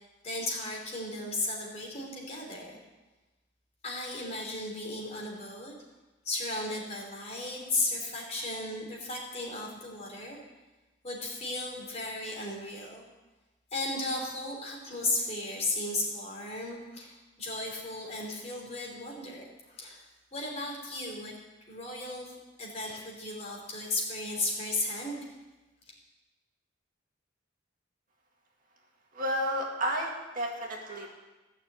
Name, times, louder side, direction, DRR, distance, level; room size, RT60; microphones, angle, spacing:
voice 1, 0.2-2.7 3.8-5.7 6.3-10.4 11.0-13.0 13.7-19.4 19.8-20.0 20.3-21.3 21.7-22.3 22.6-25.2, left 2 dB, 35° left, -1 dB, 3.5 m, -35 dB
voice 2, 29.1-31.2, equal, 45° right, 0 dB, 2.1 m, -32 dB
16.0 x 6.7 x 8.3 m, 1.1 s
head